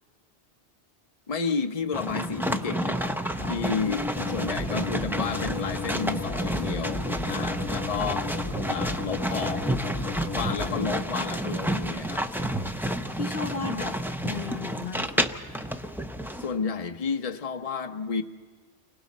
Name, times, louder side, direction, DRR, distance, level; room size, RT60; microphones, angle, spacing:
voice 1, 1.3-3.2 3.4-8.3 8.6-9.7 10.3-12.3 16.4-18.2, left 5 dB, 35° left, 0.9 m, -31 dB
sound 1, 1.9-16.5, right 1 dB, 5° right, 0.4 m, -30 dB
voice 2, 3.3-4.4 10.4-10.5 10.7-10.9 13.2-15.3, left 4 dB, 60° left, 1.0 m, -36 dB
sound 2, 4.2-11.0, left 4 dB, 15° left, 1.2 m, -34 dB
30.0 x 24.5 x 4.1 m
omnidirectional pair, 1.2 m